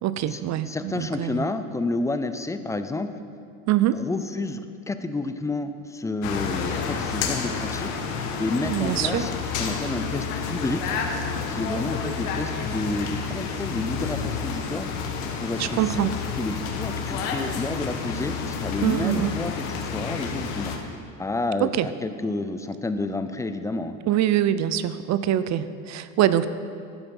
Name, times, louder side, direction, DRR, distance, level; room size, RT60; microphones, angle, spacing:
voice 1, 0.0-1.4 3.7-4.0 8.7-9.3 15.6-16.2 18.8-19.3 21.6-21.9 24.1-26.5, right 12 dB, 45° right, 14 dB, 0.6 m, -24 dB
voice 2, 0.7-3.1 3.9-9.3 9.6-11.0 11.5-14.9 15.4-16.1 16.4-20.7 21.2-24.0, left 2 dB, 10° left, 9 dB, 0.4 m, -30 dB
sound 1, 6.2-20.8, left 5 dB, 90° left, 1.4 m, -30 dB
11.5 x 8.4 x 5.4 m, 2.4 s
supercardioid pair, 110°, 40 cm